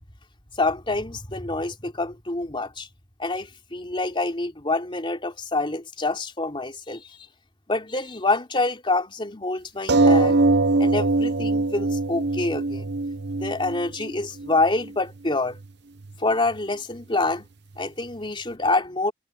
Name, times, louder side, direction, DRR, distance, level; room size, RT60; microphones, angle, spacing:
voice 1, 0.6-2.9 3.2-7.2 7.7-10.4 10.8-12.9 13.4-15.6 16.2-17.5 17.8-19.1, left 2 dB, 25° left, 3.5 m, -26 dB
sound 1, 9.9-14.9 15.6-15.7 16.0-16.1, right 2 dB, 60° right, 0.9 m, -22 dB
head